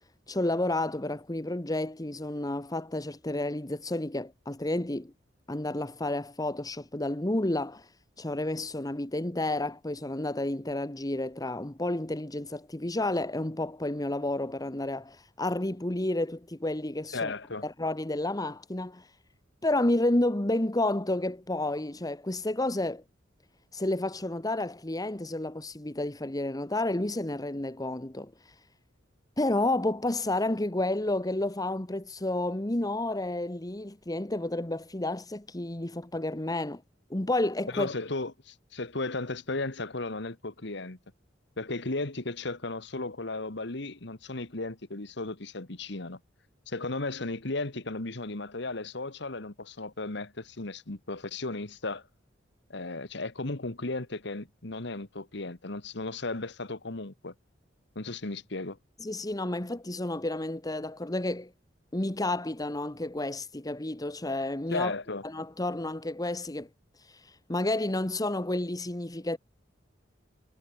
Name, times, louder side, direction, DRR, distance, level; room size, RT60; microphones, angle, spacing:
voice 1, 0.3-5.1 5.5-7.9 8.2-17.3 17.6-19.1 19.6-23.0 23.7-28.3 29.4-36.8 37.1-37.9 59.0-61.5 61.9-64.9 65.2-66.7 67.5-69.4, left 1 dB, 20° left, 1.3 m, -30 dB
voice 2, 17.1-17.6 37.7-41.0 41.6-46.2 46.7-52.0 52.7-57.3 57.9-58.8 64.7-65.2, left 2 dB, 65° left, 1.8 m, -35 dB
head